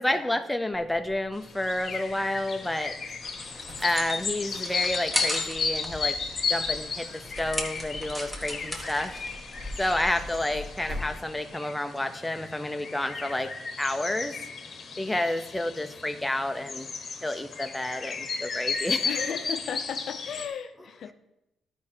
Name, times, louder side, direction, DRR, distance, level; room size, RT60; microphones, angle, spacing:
voice 1, 0.0-3.0 3.8-6.2 6.5-9.2 9.8-13.5 13.8-14.4 15.0-16.9 17.2-19.1, left 1 dB, 10° left, 0.6 m, -30 dB
sound 1, 0.7-11.2, left 1 dB, 85° right, 2.9 m, -47 dB
sound 2, 1.4-20.5, left 5 dB, 45° left, 1.1 m, -34 dB
sound 3, 3.2-11.2, equal, 10° right, 1.4 m, -37 dB
voice 2, 19.0-21.1, left 8 dB, 60° left, 0.5 m, -35 dB
11.5 x 4.8 x 4.4 m
cardioid pair, 90°, 0 cm